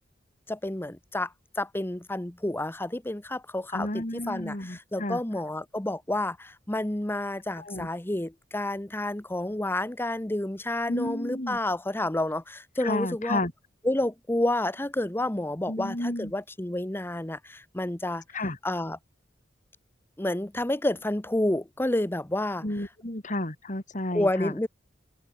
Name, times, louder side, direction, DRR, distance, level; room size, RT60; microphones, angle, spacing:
voice 1, 0.5-1.3 1.6-13.4 13.8-18.2 18.6-19.0 20.2-22.6 24.1-24.7, left 1 dB, 10° left, 0.9 m, -29 dB
voice 2, 3.7-5.2 7.5-7.9 10.9-11.6 12.8-13.5 15.7-16.3 18.3-18.6 22.6-24.5, left 1 dB, 45° left, 3.6 m, -32 dB
head